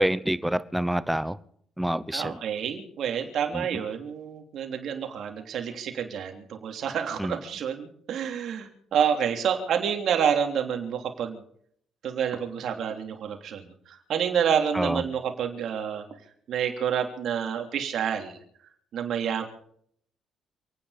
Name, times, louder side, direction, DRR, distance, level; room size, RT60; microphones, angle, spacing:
voice 1, 0.0-1.4 1.8-2.4 3.5-3.8 7.2-7.4 14.7-15.0, right 1 dB, 5° right, 16 dB, 0.9 m, -27 dB
voice 2, 2.1-11.4 12.0-16.0 16.5-18.4 18.9-19.4, right 8 dB, 70° right, 4 dB, 3.2 m, -28 dB
29.0 x 9.7 x 5.1 m, 0.65 s
cardioid pair, 90°, 0 cm